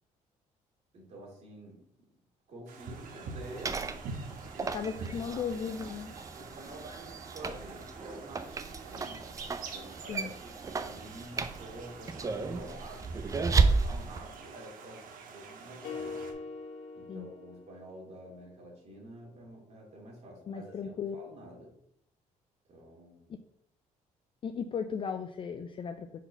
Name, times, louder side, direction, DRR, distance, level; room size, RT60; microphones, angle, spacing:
voice 1, 0.9-1.8 2.5-3.8 4.5-5.4 6.3-9.3 9.7-16.2 16.9-21.7 22.7-23.3, right 1 dB, 55° right, -2 dB, 2.4 m, -48 dB
sound 1, 2.7-16.3, right 4 dB, 75° right, 1.1 m, -47 dB
sound 2, 3.4-14.2, right 4 dB, 25° right, 0.4 m, -33 dB
voice 2, 4.7-6.1 10.1-10.3 17.1-17.3 20.5-21.2 23.3-23.4 24.4-26.2, left 6 dB, 35° left, 8 dB, 0.4 m, -36 dB
sound 3, 15.8-18.2, left 4 dB, 65° left, 1.5 m, -42 dB
4.6 x 3.9 x 5.6 m, 0.70 s
cardioid pair, 130°, 14 cm